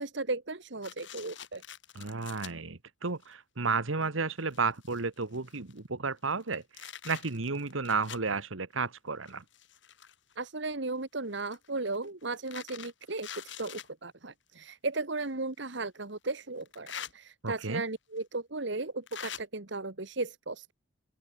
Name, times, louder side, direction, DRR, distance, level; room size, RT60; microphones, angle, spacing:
voice 1, 0.0-1.6 10.4-20.7, right 3 dB, 60° right, 1.6 m, -36 dB
sound 1, 0.8-2.5 3.2-3.3 4.0-4.1 4.4-5.8 6.3-8.3 9.2-10.3 11.3-13.9 15.2-15.3 16.6-17.1 18.2-18.3 19.1-19.4, left 8 dB, 60° left, 6.4 m, -45 dB
voice 2, 1.9-9.4 17.4-17.8, right 4 dB, 80° right, 1.4 m, -32 dB
open air
head